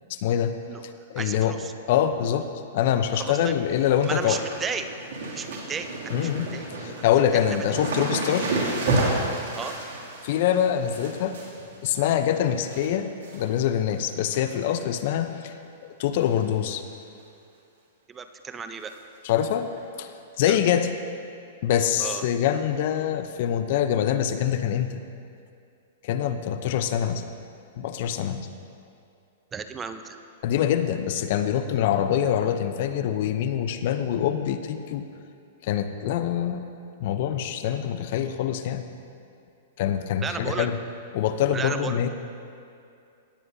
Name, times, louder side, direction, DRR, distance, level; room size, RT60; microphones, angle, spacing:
voice 1, 0.1-0.5 1.1-1.6 1.9-2.5 2.7-4.4 6.1-6.5 6.8-8.5 10.2-11.4 11.8-15.5 16.0-16.8 19.2-19.7 20.0-20.1 20.4-20.9 21.6-25.0 26.0-27.2 27.8-28.5 30.4-35.0 35.6-36.6 37.0-38.8 39.8-40.8 41.1-42.1, left 9 dB, 55° left, 9 dB, 0.6 m, -24 dB
voice 2, 1.2-1.7 3.1-3.5 4.0-4.9 5.3-6.7 7.3-7.5 9.5-9.7 18.1-18.9 20.5-20.6 22.0-22.2 29.5-30.2 40.2-40.7 41.5-42.1, right 5 dB, 20° right, 9 dB, 0.5 m, -34 dB
sound 1, 3.1-3.4 3.7-12.9 13.2-13.7 14.0-14.8 15.1-15.2 16.2-16.5 16.7-16.8 17.2-17.3 18.9-19.0 19.7-19.8, right 2 dB, 70° right, 2.5 m, -31 dB
17.5 x 9.4 x 2.7 m, 2.5 s
hypercardioid pair, 125°, 0 cm